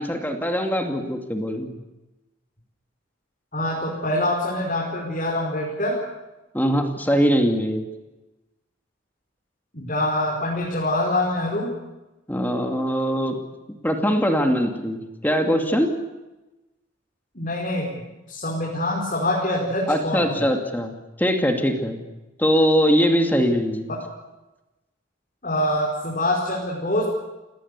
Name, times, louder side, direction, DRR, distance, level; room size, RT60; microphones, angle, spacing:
voice 1, 0.0-1.7 6.5-7.9 12.3-13.3 13.8-15.9 19.9-22.0 22.4-23.9, equal, 10° left, 4 dB, 2.4 m, -22 dB
voice 2, 3.5-6.0 9.7-11.8 17.4-17.9 18.3-20.5 23.9-24.0 25.4-27.0, left 1 dB, 40° left, -2 dB, 5.2 m, -25 dB
29.5 x 18.5 x 8.3 m, 1.0 s
head